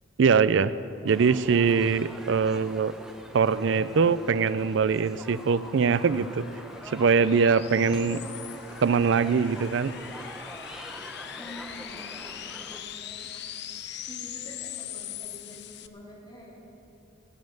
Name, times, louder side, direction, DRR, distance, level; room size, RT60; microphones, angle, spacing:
voice 1, 0.2-0.7 1.0-2.9 3.3-6.4 6.9-8.2 8.8-9.9, right 5 dB, 60° right, 15 dB, 0.4 m, -22 dB
sound 1, 1.1-12.8, equal, 5° right, 0.7 m, -44 dB
sound 2, 4.6-15.9, left 11 dB, 55° left, 0.5 m, -42 dB
voice 2, 7.9-8.4 10.9-13.5 13.8-16.5, left 1 dB, 20° left, -5 dB, 3.3 m, -47 dB
17.5 x 7.5 x 7.8 m, 2.9 s
head